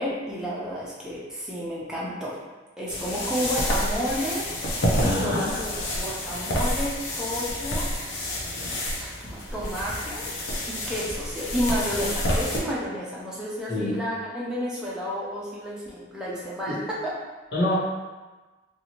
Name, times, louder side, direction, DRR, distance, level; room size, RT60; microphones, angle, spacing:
voice 1, 0.0-2.4 2.8-7.9 9.0-10.3 10.7-17.1, equal, 5° right, -7 dB, 0.5 m, -31 dB
sound 1, 2.9-12.6, left 1 dB, 75° left, 0.6 m, -29 dB
voice 2, 5.0-5.4 13.7-14.0 16.7-16.8 17.5-17.7, left 1 dB, 60° left, -8 dB, 0.9 m, -26 dB
2.7 x 2.4 x 2.9 m, 1.2 s
head